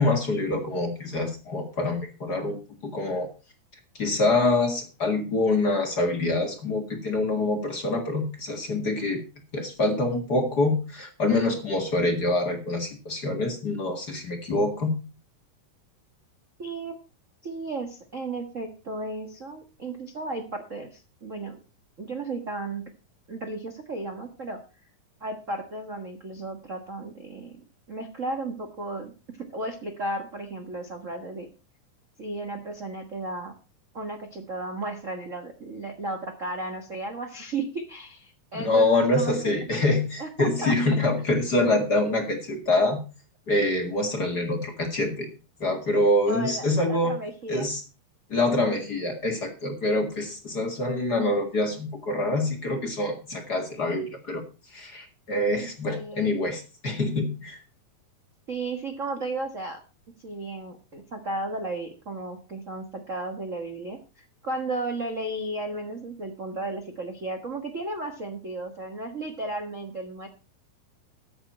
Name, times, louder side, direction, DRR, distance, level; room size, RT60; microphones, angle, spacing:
voice 1, 0.0-2.6 2.8-3.3 4.0-9.2 9.5-15.0 38.5-43.0 43.5-45.3 45.6-47.1 47.5-47.8 48.3-54.4 54.7-57.6, left 2 dB, 35° left, 4 dB, 1.8 m, -25 dB
voice 2, 16.6-17.0 17.4-21.6 22.0-22.8 23.3-24.6 25.2-27.6 27.9-29.1 29.4-31.5 32.2-33.5 33.9-39.5 40.2-40.7 46.3-47.7 55.5-56.3 58.5-59.8 60.2-70.3, right 2 dB, 65° right, 4 dB, 0.7 m, -34 dB
14.0 x 8.8 x 4.3 m, 0.32 s
omnidirectional pair, 4.0 m